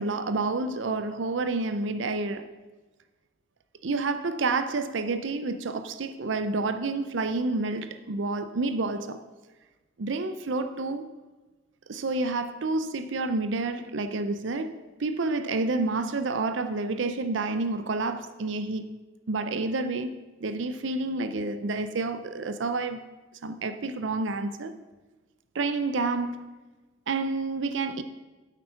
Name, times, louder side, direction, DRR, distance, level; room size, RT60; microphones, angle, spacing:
voice 1, 0.0-2.5 3.8-9.2 10.0-11.1 11.9-18.8 19.3-23.0 23.4-24.7 25.5-26.5 27.1-28.0, right 3 dB, 70° right, 0.6 m, -29 dB
8.7 x 8.1 x 5.7 m
head